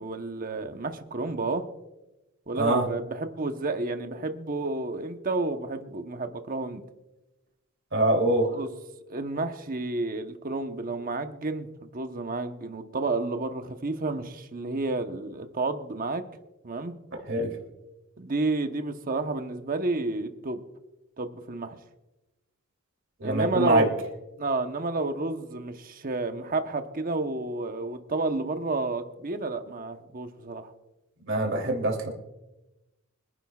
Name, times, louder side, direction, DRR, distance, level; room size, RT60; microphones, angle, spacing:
voice 1, 0.0-1.7 2.5-6.8 8.5-8.7 9.1-16.2 16.6-16.9 18.2-20.6 21.2-21.8 23.2-23.9 24.4-30.7, right 3 dB, 40° right, 7 dB, 1.0 m, -30 dB
voice 2, 2.5-2.9 7.9-8.5 17.3-17.5 23.2-23.9 31.3-32.1, right 1 dB, 60° right, 1 dB, 3.0 m, -24 dB
25.0 x 10.5 x 2.4 m, 1.0 s
head